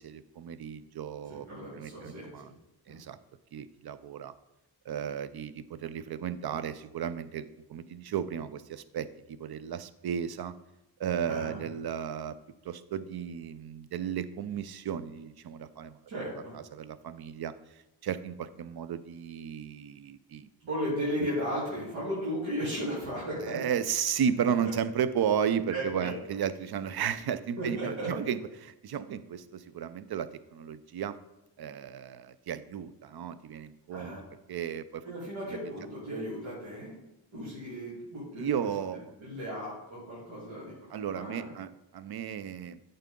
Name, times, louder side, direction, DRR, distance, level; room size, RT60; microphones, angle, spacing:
voice 1, 0.0-1.5 1.7-2.5 2.9-3.2 3.5-4.3 4.8-10.5 11.0-12.4 12.6-16.0 16.5-20.5 23.4-31.2 31.6-34.2 34.5-35.1 35.5-35.6 38.3-39.1 40.9-42.8, right 8 dB, 55° right, 14 dB, 0.6 m, -34 dB
voice 2, 1.3-2.5 2.9-3.0 11.3-11.6 16.1-16.6 20.7-23.6 25.7-26.1 27.6-28.1 33.9-34.2 35.0-37.0 37.3-38.7 39.2-41.5, equal, 85° right, -8 dB, 3.2 m, -35 dB
9.0 x 5.7 x 3.7 m, 0.95 s
cardioid pair, 60°, 46 cm